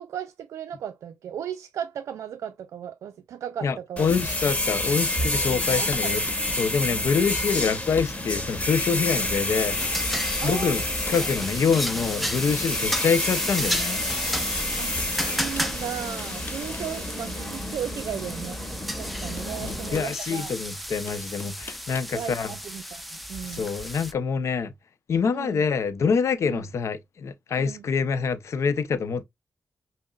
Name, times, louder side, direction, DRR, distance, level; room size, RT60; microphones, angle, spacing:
voice 1, 0.0-4.1 5.7-6.6 10.4-11.3 12.9-13.0 14.8-18.6 19.0-20.5 22.1-23.7 25.3-25.6 26.5-26.6 27.6-27.9, right 9 dB, 80° right, 0.3 m, -36 dB
voice 2, 3.6-6.2 6.6-10.0 10.4-10.8 11.1-14.0 19.6-22.5 23.5-24.7 25.1-29.2, left 5 dB, 70° left, 0.6 m, -26 dB
sound 1, 4.0-20.0, left 1 dB, 25° left, 1.4 m, -29 dB
sound 2, 5.9-6.5 7.2-7.4 7.6-8.2 8.8-8.9 10.0-10.1 10.5-11.3 11.9-13.6 15.0-15.7 16.2-16.9 17.2-17.3 18.7-18.8 19.4-20.1 21.1-22.1, left 3 dB, 40° left, 0.9 m, -43 dB
sound 3, 9.7-24.1, equal, ahead, 0.7 m, -33 dB
5.4 x 2.1 x 2.3 m
supercardioid pair, 45°, 5 cm